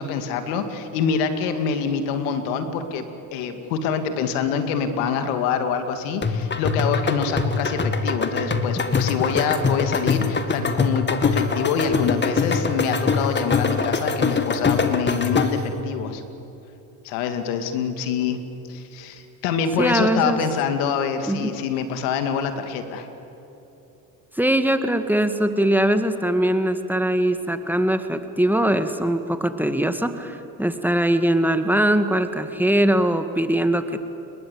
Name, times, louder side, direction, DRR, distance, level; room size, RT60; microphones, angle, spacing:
voice 1, 0.0-3.0 3.3-16.2 17.0-18.4 18.7-23.1, left 6 dB, 80° left, 8 dB, 2.5 m, -25 dB
sound 1, 6.2-15.7, left 4 dB, 25° left, 2.3 m, -23 dB
voice 2, 19.8-20.4 21.3-21.5 24.4-34.0, right 1 dB, 5° right, 8 dB, 2.0 m, -21 dB
29.5 x 21.5 x 8.5 m, 3.0 s
supercardioid pair, 75°, 43 cm